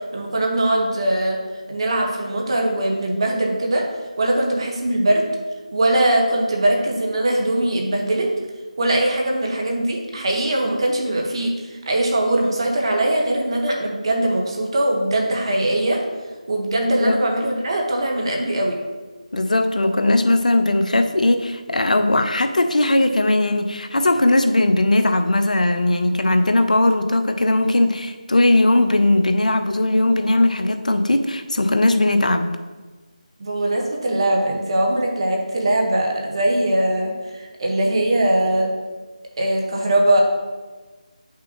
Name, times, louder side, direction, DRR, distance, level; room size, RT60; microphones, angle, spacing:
voice 1, 0.1-1.4 1.7-3.9 4.2-5.3 5.7-8.3 8.8-16.0 16.5-18.8 33.4-38.7 39.4-40.2, right 1 dB, 40° right, 0 dB, 1.5 m, -21 dB
voice 2, 19.3-32.5, left 2 dB, 75° left, 7 dB, 0.7 m, -18 dB
8.4 x 6.0 x 3.1 m, 1.3 s
figure-of-eight pair, 165°, 4 cm